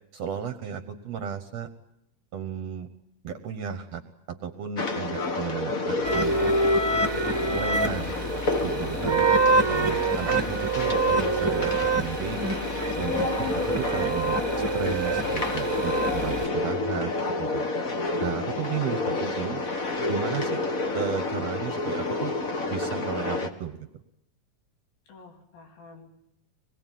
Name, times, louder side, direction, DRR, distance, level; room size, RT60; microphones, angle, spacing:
voice 1, 0.1-1.7 2.3-2.9 3.2-4.0 4.3-6.5 7.5-9.3 9.7-12.4 13.0-14.4 14.7-17.1 17.4-17.6 18.2-19.6 20.1-22.4 22.7-23.9, right 8 dB, 60° right, 8 dB, 1.8 m, -34 dB
sound 1, 4.8-23.5, left 3 dB, 45° left, 1.1 m, -29 dB
sound 2, 6.0-16.5, right 3 dB, 10° right, 1.2 m, -26 dB
voice 2, 25.1-26.2, left 4 dB, 80° left, 3 dB, 4.6 m, -49 dB
24.5 x 21.0 x 9.2 m, 0.81 s
omnidirectional pair, 4.0 m